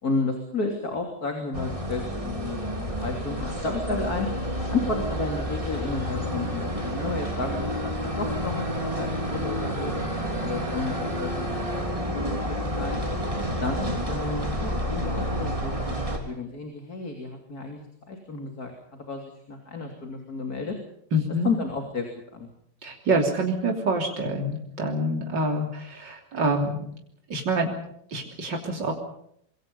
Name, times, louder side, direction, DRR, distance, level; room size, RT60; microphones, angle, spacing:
voice 1, 0.0-4.3 4.7-9.9 10.4-11.8 12.1-13.0 13.6-18.7 19.1-20.8 21.4-22.1 22.3-22.5, left 3 dB, 55° left, 3 dB, 3.6 m, -32 dB
sound 1, 1.5-16.2, equal, 20° right, 3.7 m, -29 dB
voice 2, 21.1-21.5 22.8-26.9 27.3-27.7 28.1-28.9, right 1 dB, 85° right, 2 dB, 3.9 m, -26 dB
26.0 x 24.0 x 5.5 m, 0.72 s
omnidirectional pair, 1.9 m